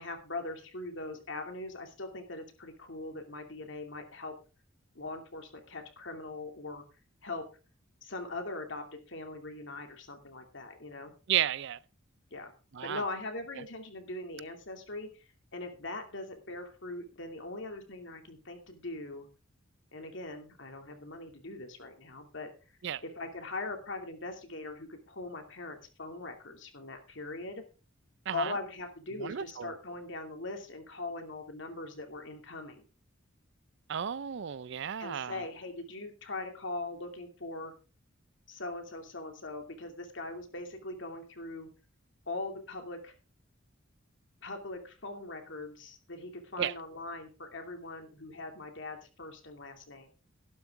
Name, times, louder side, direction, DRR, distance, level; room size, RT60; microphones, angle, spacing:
voice 1, 0.0-4.3 4.9-6.8 7.2-7.5 8.0-11.1 12.3-12.5 12.8-19.3 19.9-22.5 23.0-27.6 28.3-32.9 35.0-37.7 38.5-41.7 42.3-43.1 44.4-50.1, left 2 dB, 65° left, 2.6 m, -41 dB
voice 2, 11.3-11.8 12.7-13.0 22.8-23.0 28.3-28.5 29.2-29.7 33.9-35.4 46.6-46.7, right 10 dB, 60° right, 0.5 m, -33 dB
12.0 x 12.0 x 3.7 m
head